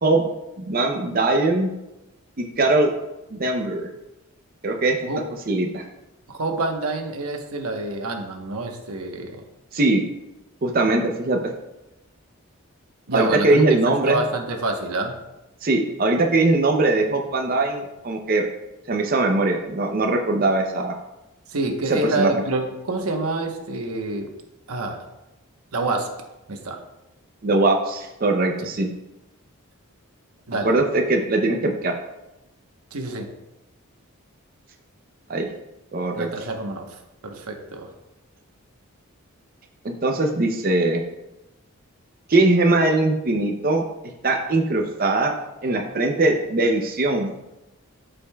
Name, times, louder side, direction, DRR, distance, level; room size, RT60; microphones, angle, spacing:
voice 1, 0.6-1.7 2.4-2.9 3.3-3.9 4.6-5.0 5.5-5.8 9.7-10.0 10.6-11.5 13.1-14.2 15.6-18.5 18.9-20.9 21.9-22.3 27.4-28.9 30.6-32.0 35.3-35.5 35.9-36.3 39.8-41.0 42.3-43.8 44.2-45.3 45.6-47.3, right 2 dB, 40° right, 2 dB, 0.6 m, -21 dB
voice 2, 6.3-9.4 13.1-15.2 21.5-24.3 24.7-25.1 25.7-26.1 26.5-26.8 28.6-28.7 30.5-30.7 32.9-33.3 36.2-37.0 37.2-37.9, right 2 dB, 85° right, 3 dB, 1.0 m, -27 dB
13.0 x 5.2 x 2.3 m, 0.97 s
head